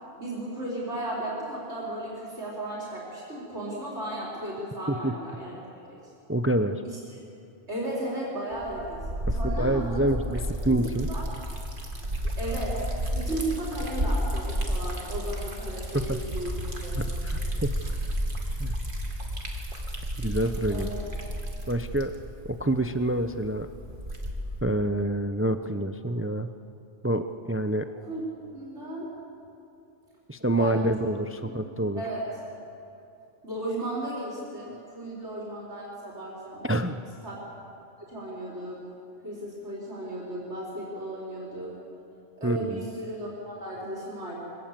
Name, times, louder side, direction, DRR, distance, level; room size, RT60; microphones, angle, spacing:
voice 1, 0.2-5.6 5.9-6.0 6.8-7.0 7.7-9.0 9.3-10.3 10.7-10.8 11.1-11.3 12.4-12.9 13.1-16.6 16.8-17.0 20.7-21.1 28.1-28.2 28.5-29.1 30.5-31.1 31.4-31.5 31.9-32.3 33.4-36.7 37.2-37.4 38.1-38.8 39.2-41.7 42.4-44.4, right 1 dB, 65° right, -6 dB, 4.8 m, -35 dB
voice 2, 6.3-6.8 9.3-11.1 15.9-16.2 17.0-17.7 18.6-18.7 20.2-20.9 21.7-22.1 22.4-23.7 24.6-26.5 27.0-27.9 30.3-32.0 36.6-37.0 42.4-42.8, right 1 dB, 20° right, 9 dB, 0.4 m, -27 dB
Liquid, 8.5-24.6, equal, 45° right, 2.5 m, -32 dB
24.0 x 18.0 x 7.5 m, 2.8 s
omnidirectional pair, 1.3 m